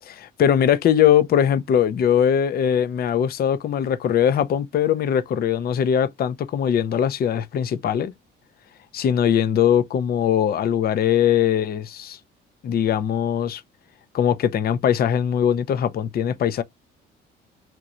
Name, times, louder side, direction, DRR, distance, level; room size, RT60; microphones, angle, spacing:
voice 1, 0.1-8.1 8.9-12.2 12.6-13.6 14.1-16.6, left 9 dB, 50° left, 0.5 m, -21 dB
3.0 x 2.2 x 3.7 m
cardioid pair, 85°, 21 cm